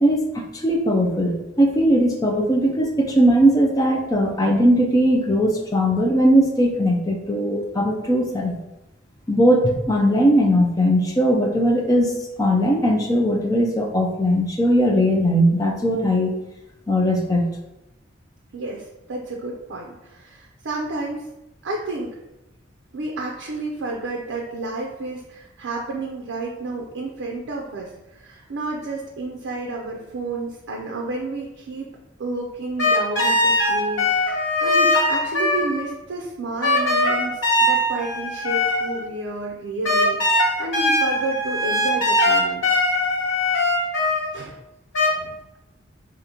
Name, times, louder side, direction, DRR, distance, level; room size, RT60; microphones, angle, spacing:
voice 1, 0.0-8.6 9.3-16.3 16.9-17.5, equal, 20° left, 1 dB, 0.5 m, -19 dB
voice 2, 18.5-21.3 21.6-22.1 22.9-31.9 32.2-42.7 44.3-44.6 45.2-45.4, right 2 dB, 75° right, 0 dB, 0.5 m, -31 dB
sound 1, 32.8-35.9 36.6-39.1 39.8-44.4 44.9-45.1, left 1 dB, 80° left, 1.4 m, -21 dB
5.0 x 2.5 x 2.8 m, 0.95 s
head